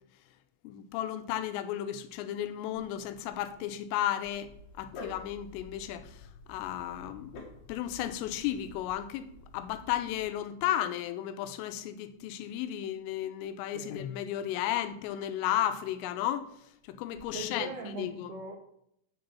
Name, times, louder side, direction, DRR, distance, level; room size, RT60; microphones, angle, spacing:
voice 1, 0.6-4.5 4.8-7.3 7.7-9.3 9.5-16.5 16.9-18.3, left 11 dB, 90° left, 3.2 m, -34 dB
Dog, 4.4-10.3, left 3 dB, 65° left, 2.8 m, -49 dB
voice 2, 17.3-18.6, right 3 dB, 80° right, 2.3 m, -40 dB
8.7 x 3.9 x 7.0 m
omnidirectional pair, 5.7 m